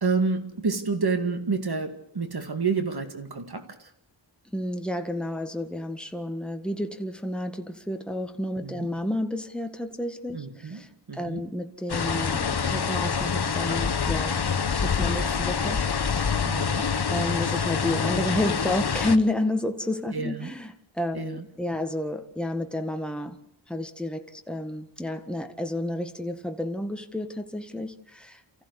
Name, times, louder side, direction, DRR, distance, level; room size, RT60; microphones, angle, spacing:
voice 1, 0.0-3.9 8.6-8.9 10.3-11.5 16.4-17.0 20.1-20.5 21.1-21.5, right 4 dB, 55° right, 2.2 m, -29 dB
voice 2, 4.5-10.9 11.1-14.4 14.7-16.4 17.1-23.4 23.7-28.6, left 1 dB, ahead, 1.7 m, -31 dB
sound 1, 11.9-19.2, left 6 dB, 60° left, 1.2 m, -26 dB
28.5 x 15.0 x 8.2 m
wide cardioid pair, 95°, 45 cm